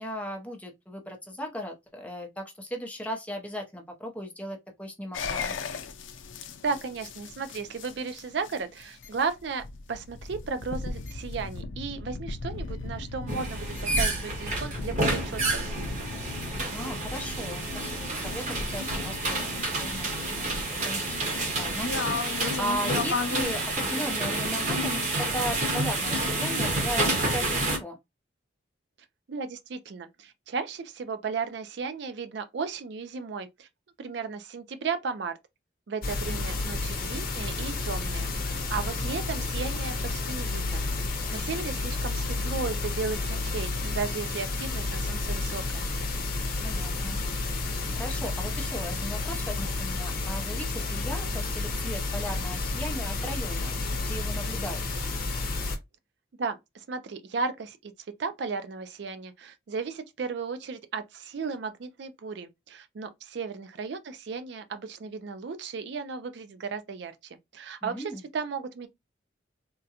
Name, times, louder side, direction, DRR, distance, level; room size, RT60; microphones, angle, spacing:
voice 1, 0.0-5.6 16.7-20.5 20.8-22.3 22.6-28.0 38.8-39.0 46.6-47.2 48.0-54.8 67.8-68.2, equal, 10° left, 0.6 m, -37 dB
sound 1, 5.1-23.4, left 4 dB, 85° left, 0.5 m, -36 dB
voice 2, 6.6-16.1 29.3-33.7 34.0-35.4 35.9-40.8 41.3-45.9 56.4-57.9 58.2-67.1 67.5-68.9, right 5 dB, 60° right, 0.4 m, -35 dB
sound 2, 13.3-27.8, right 2 dB, 40° right, 1.0 m, -29 dB
sound 3, 36.0-55.8, left 3 dB, 45° left, 0.7 m, -31 dB
3.6 x 2.1 x 2.8 m
head